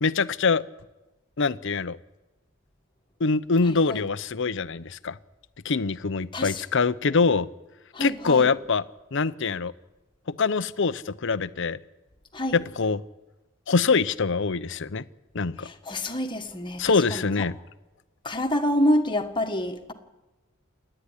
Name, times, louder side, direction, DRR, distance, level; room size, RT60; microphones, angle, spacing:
voice 1, 0.0-0.6 1.4-2.0 3.2-5.2 5.6-7.5 8.0-8.8 9.1-9.7 10.4-11.8 12.5-13.0 13.7-15.0 15.3-15.7 16.8-17.5, left 4 dB, 65° left, 14 dB, 0.7 m, -24 dB
voice 2, 3.6-4.0 6.3-6.6 7.9-8.5 12.3-12.6 15.6-17.2 18.2-19.9, left 1 dB, 25° left, 4 dB, 1.7 m, -27 dB
28.0 x 10.0 x 10.0 m, 1.1 s
head